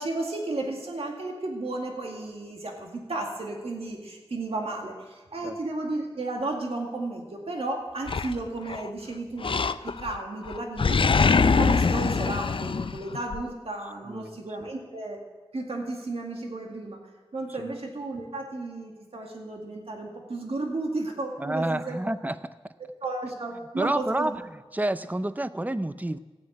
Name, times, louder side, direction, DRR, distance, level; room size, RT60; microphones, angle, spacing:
voice 1, 0.0-11.0 11.4-15.2 15.5-17.0 17.3-22.0 23.0-24.4, right 2 dB, 85° right, 1 dB, 2.1 m, -33 dB
Animal, 8.1-8.9 9.4-10.2 10.5-13.4, left 4 dB, 60° left, 0.5 m, -23 dB
voice 2, 14.1-14.7 17.6-17.7 21.4-22.4 23.8-24.3 24.7-26.2, right 1 dB, 15° right, 12 dB, 0.6 m, -29 dB
14.5 x 9.5 x 7.8 m, 1.2 s
wide cardioid pair, 80°, 10 cm